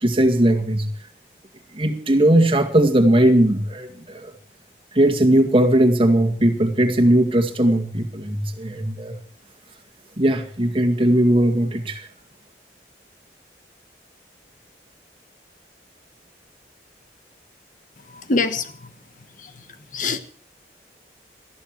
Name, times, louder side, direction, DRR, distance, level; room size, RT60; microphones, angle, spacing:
voice 1, 0.0-0.9 1.8-4.3 4.9-9.2 10.2-12.1, right 1 dB, 30° right, 2.0 m, -18 dB
voice 2, 18.0-18.9 19.4-20.2, left 3 dB, 45° left, 1.4 m, -26 dB
20.0 x 14.0 x 4.7 m
head